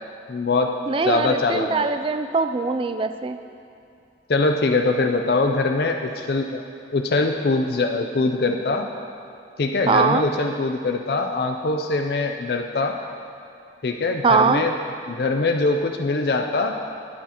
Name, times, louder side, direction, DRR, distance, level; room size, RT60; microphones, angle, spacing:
voice 1, 0.3-0.7 1.0-1.9 4.3-6.6 6.9-8.9 9.6-13.0 13.8-14.7 15.1-16.8, left 3 dB, 55° left, 4 dB, 0.4 m, -22 dB
voice 2, 0.9-3.4 9.9-10.3 14.2-14.6, right 4 dB, 30° right, 10 dB, 0.3 m, -21 dB
18.0 x 7.0 x 2.9 m, 2.6 s
head